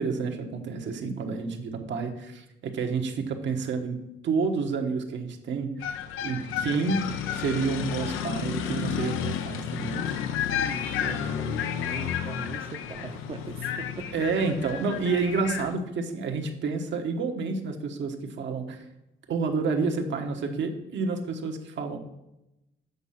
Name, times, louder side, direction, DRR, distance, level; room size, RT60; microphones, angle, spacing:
voice 1, 0.0-4.0 4.2-6.0 6.2-10.2 14.1-18.8 19.3-22.0, right 4 dB, 70° right, 4 dB, 1.3 m, -29 dB
sound 1, 5.8-15.7, left 9 dB, 90° left, 0.6 m, -31 dB
voice 2, 10.5-14.1 15.1-15.2, right 4 dB, 30° right, 6 dB, 0.7 m, -40 dB
8.2 x 4.6 x 5.7 m, 0.89 s
cardioid pair, 90°, 20 cm